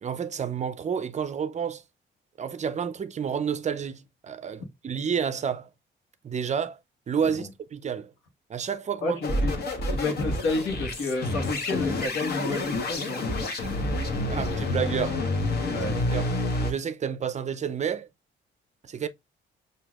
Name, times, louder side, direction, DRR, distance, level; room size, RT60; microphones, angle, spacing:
voice 1, 0.0-1.8 2.4-5.7 6.2-6.8 7.1-8.1 8.5-9.2 14.3-15.2 16.1-16.3 16.6-18.1 18.8-19.1, right 7 dB, 35° right, 0.4 m, -30 dB
voice 2, 9.0-9.5 9.9-13.2 15.7-16.0, left 2 dB, 85° left, 1.2 m, -30 dB
sound 1, 9.2-16.7, left 2 dB, 55° left, 1.2 m, -28 dB
6.0 x 2.7 x 2.3 m
cardioid pair, 90°, 20 cm